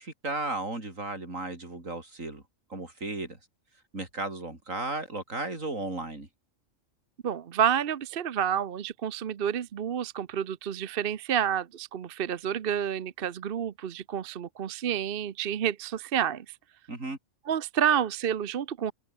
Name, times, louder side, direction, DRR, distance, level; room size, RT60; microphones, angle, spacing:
voice 1, 0.0-2.4 2.7-3.4 3.9-6.3 16.9-17.2, right 2 dB, 80° right, 5.1 m, -35 dB
voice 2, 7.2-16.5 17.5-18.9, right 9 dB, 50° right, 0.9 m, -29 dB
open air
omnidirectional pair, 1.4 m